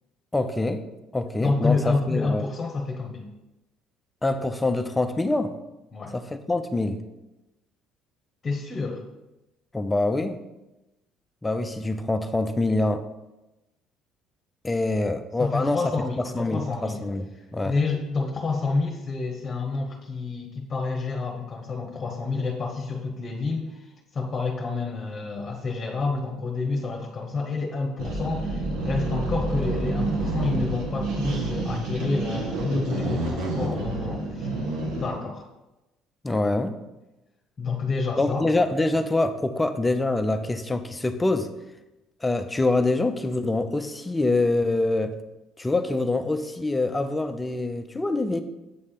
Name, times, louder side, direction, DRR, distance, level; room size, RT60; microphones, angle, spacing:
voice 1, 0.3-0.8 1.1-2.4 4.2-5.5 6.1-7.0 9.7-10.4 11.4-13.0 14.6-15.8 16.3-17.3 17.5-17.7 36.2-36.8 38.2-41.5 42.2-45.2 45.6-48.4, left 2 dB, 10° left, 9 dB, 0.5 m, -25 dB
voice 2, 1.4-3.3 5.9-6.1 8.4-9.0 15.4-17.0 17.6-34.5 34.9-35.4 37.6-38.4, left 3 dB, 25° left, 1 dB, 1.1 m, -29 dB
sound 1, 28.0-35.2, right 2 dB, 75° right, 1.7 m, -28 dB
8.3 x 3.3 x 5.7 m, 0.98 s
cardioid pair, 120°, 0 cm